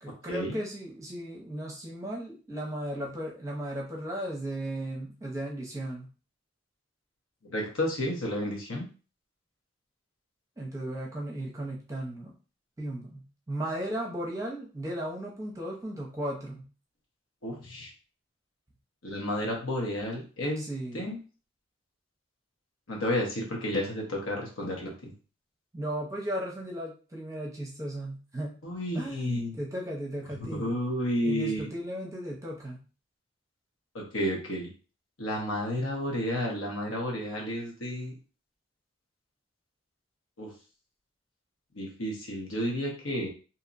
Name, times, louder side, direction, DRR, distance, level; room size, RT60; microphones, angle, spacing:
voice 1, 0.0-6.1 10.6-12.3 12.8-16.7 20.6-21.1 25.7-28.5 28.9-30.8 31.2-32.8, right 1 dB, 15° right, -2 dB, 0.6 m, -36 dB
voice 2, 7.4-8.9 17.4-17.9 19.0-20.7 20.9-21.2 22.9-25.1 28.6-29.6 30.4-31.7 33.9-34.7 35.2-38.1 40.4-40.5 41.7-43.3, equal, 85° left, 0 dB, 1.1 m, -31 dB
2.8 x 2.8 x 2.5 m, 0.35 s
head